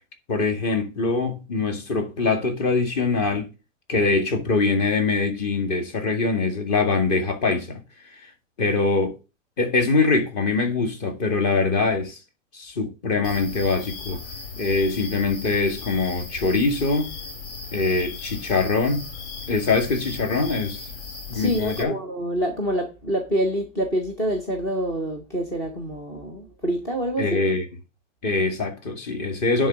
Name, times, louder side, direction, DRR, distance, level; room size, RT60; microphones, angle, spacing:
voice 1, 0.3-3.5 3.9-7.8 8.1-8.3 8.6-9.2 9.6-12.2 12.5-14.2 14.6-17.1 17.7-19.1 19.5-20.8 21.3-22.0 27.2-27.7 28.2-29.7, left 3 dB, 35° left, 2.1 m, -23 dB
sound 1, 13.2-21.8, left 4 dB, 60° left, 2.4 m, -37 dB
voice 2, 21.3-27.4, right 1 dB, 10° left, 0.4 m, -26 dB
10.0 x 3.9 x 5.9 m
hypercardioid pair, 160°, 38 cm